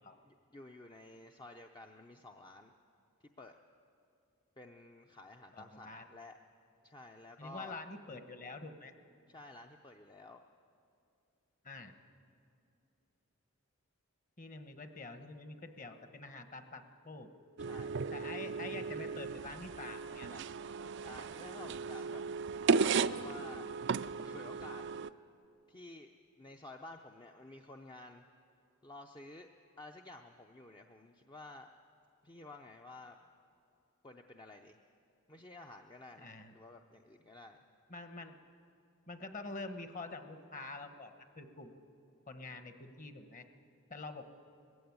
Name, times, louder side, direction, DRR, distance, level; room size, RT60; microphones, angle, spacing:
voice 1, 0.2-2.7 3.2-3.5 4.6-6.4 6.8-7.8 9.3-10.4 17.6-17.9 21.0-22.2 22.8-23.7 24.2-24.9 25.7-26.1 26.4-28.3 28.8-29.5 29.8-31.7 32.2-33.2 34.0-34.8 35.3-37.6, left 2 dB, 20° left, 3 dB, 0.5 m, -52 dB
voice 2, 5.5-6.1 7.4-8.9 11.6-11.9 14.4-17.3 18.1-20.4 36.2-36.5 37.9-38.3 39.1-41.8 42.3-43.5 43.9-44.2, left 3 dB, 35° left, 8 dB, 1.1 m, -46 dB
sound 1, 17.6-25.1, right 5 dB, 55° right, 0.4 m, -35 dB
20.5 x 15.5 x 9.4 m, 2.6 s
head